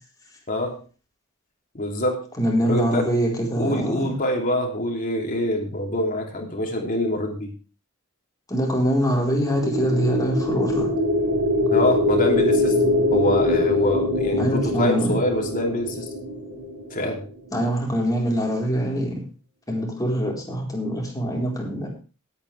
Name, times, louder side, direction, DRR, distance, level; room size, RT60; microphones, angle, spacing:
voice 1, 0.5-0.8 1.7-2.2 2.6-3.1 3.5-7.5 11.7-12.8 13.1-16.1 16.9-17.2, left 1 dB, 40° left, 1 dB, 3.1 m, -25 dB
voice 2, 2.4-4.1 8.5-10.9 14.4-15.2 17.5-19.2 19.7-21.9, equal, 15° left, -2 dB, 4.2 m, -24 dB
sound 1, 9.2-17.3, left 1 dB, 50° right, 4.8 m, -23 dB
17.5 x 9.0 x 3.4 m, 0.34 s
head